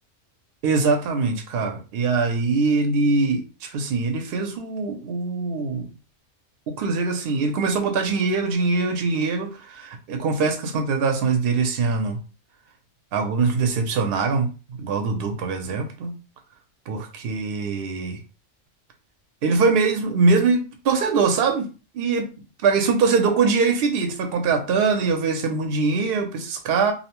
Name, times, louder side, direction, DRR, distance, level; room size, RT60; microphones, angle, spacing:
voice 1, 0.6-5.9 6.7-12.2 13.1-14.5 14.8-16.2 16.9-18.2 19.4-21.7 21.9-22.2 22.6-26.9, right 4 dB, 65° right, 4 dB, 0.7 m, -22 dB
2.7 x 2.0 x 2.9 m, 0.33 s
omnidirectional pair, 1.2 m